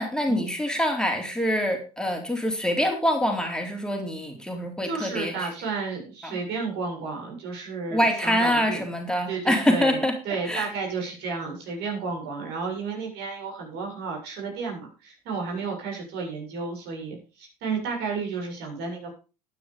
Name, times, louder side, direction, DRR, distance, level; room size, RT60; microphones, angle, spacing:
voice 1, 0.0-5.5 6.2-6.4 7.9-10.1 10.5-10.7, equal, 5° left, 2 dB, 3.9 m, -25 dB
voice 2, 4.8-8.8 9.3-19.1, right 4 dB, 55° right, 1 dB, 7.3 m, -32 dB
12.0 x 9.8 x 5.2 m, 0.34 s
hypercardioid pair, 70°, 20 cm